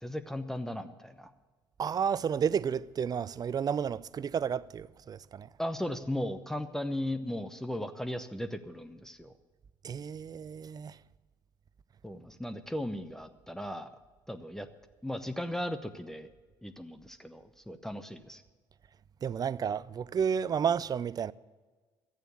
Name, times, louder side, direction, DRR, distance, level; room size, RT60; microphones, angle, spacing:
voice 1, 0.0-1.3 5.6-9.3 12.0-13.9 14.3-14.7 15.0-16.3 16.6-18.4, left 1 dB, 5° left, 0.8 m, -36 dB
voice 2, 1.8-5.5 9.8-11.0 19.2-21.3, right 7 dB, 35° right, 0.4 m, -31 dB
13.0 x 9.0 x 8.5 m
hypercardioid pair, 55°, 11 cm